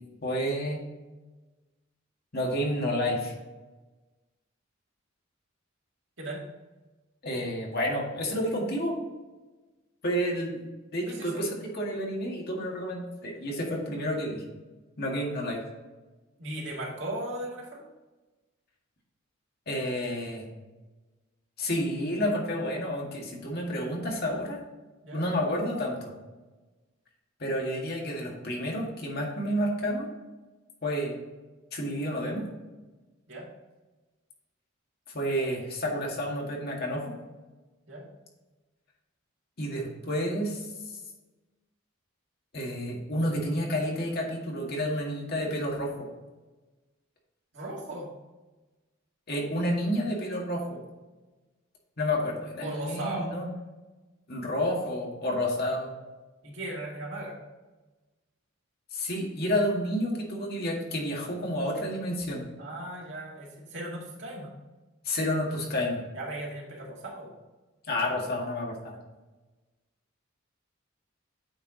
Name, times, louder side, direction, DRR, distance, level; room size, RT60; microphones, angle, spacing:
voice 1, 0.2-0.8 2.3-3.3 7.2-9.1 10.0-10.6 10.9-14.4 15.0-15.6 19.7-20.5 21.6-24.6 25.1-26.1 27.4-30.1 30.8-31.2 31.7-32.4 35.1-37.1 39.6-41.0 42.5-46.1 49.3-50.8 52.0-53.5 54.3-55.9 58.9-62.4 65.0-66.0 67.9-68.9, equal, 50° left, -2 dB, 1.9 m, -30 dB
voice 2, 11.1-11.4 16.4-17.9 25.0-25.2 33.3-33.5 37.9-38.1 47.5-48.1 52.6-53.3 56.4-57.4 62.6-64.5 66.1-67.4, right 1 dB, 65° right, -3 dB, 2.1 m, -37 dB
8.8 x 4.6 x 3.9 m, 1.2 s
head